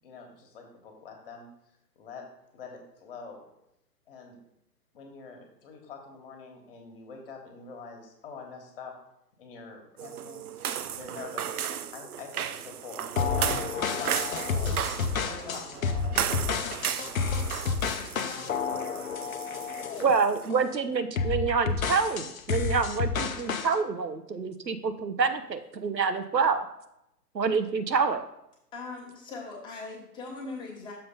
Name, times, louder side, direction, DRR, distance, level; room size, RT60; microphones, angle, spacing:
voice 1, 0.0-1.5 1.9-2.2 2.5-3.4 4.1-4.4 4.9-8.9 9.4-10.4 10.9-14.4 14.9-16.9, left 4 dB, 35° left, 2 dB, 1.5 m, -45 dB
sound 1, 10.0-20.5, right 9 dB, 65° right, 0.5 m, -35 dB
sound 2, 13.2-20.1 20.5-20.8 21.2-23.7, left 5 dB, 55° left, 0.8 m, -30 dB
voice 2, 17.9-18.5 18.9-19.2 28.7-30.9, left 3 dB, 10° left, -2 dB, 1.2 m, -41 dB
voice 3, 20.0-26.6 27.3-28.2, right 5 dB, 85° right, 9 dB, 0.9 m, -27 dB
6.7 x 3.8 x 5.4 m, 0.81 s
figure-of-eight pair, 125°, 49 cm